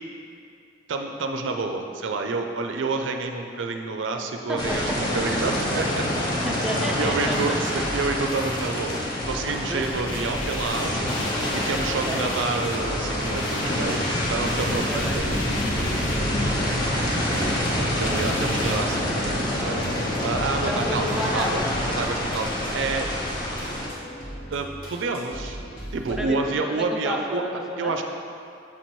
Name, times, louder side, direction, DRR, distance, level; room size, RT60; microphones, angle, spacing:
voice 1, 0.9-6.2 7.0-9.0 9.3-11.1 11.5-15.4 18.0-20.0 20.2-21.6 21.9-23.1 24.5-25.6 25.9-27.4 27.8-28.0, right 3 dB, 70° right, 5 dB, 0.4 m, -28 dB
voice 2, 4.5-5.0 6.4-7.6 9.7-10.1 11.9-12.2 14.7-15.2 16.1-18.0 20.5-21.7 26.1-28.0, equal, 5° right, -1 dB, 0.4 m, -33 dB
sound 1, 4.6-23.9, left 1 dB, 25° left, 0.8 m, -27 dB
sound 2, 6.9-26.3, right 1 dB, 50° left, 1.3 m, -39 dB
sound 3, 10.1-18.8, left 2 dB, 80° left, 0.6 m, -37 dB
7.1 x 3.1 x 4.3 m, 2.5 s
head